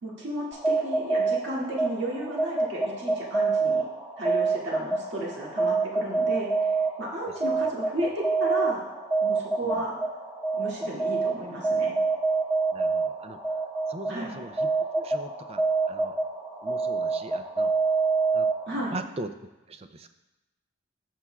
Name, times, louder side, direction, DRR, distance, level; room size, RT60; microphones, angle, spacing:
voice 1, 0.0-3.8 4.2-6.7 7.0-8.8 9.2-10.0 10.6-12.0 14.1-14.3 18.7-18.9, right 1 dB, 55° right, -5 dB, 2.1 m, -33 dB
sound 1, 0.5-19.0, right 4 dB, 10° right, 1.3 m, -27 dB
voice 2, 12.7-13.6 13.9-16.2 16.6-17.7 18.3-18.5 18.9-19.3 19.7-20.1, right 2 dB, 30° right, 9 dB, 0.4 m, -40 dB
14.0 x 6.0 x 2.3 m, 1.0 s
head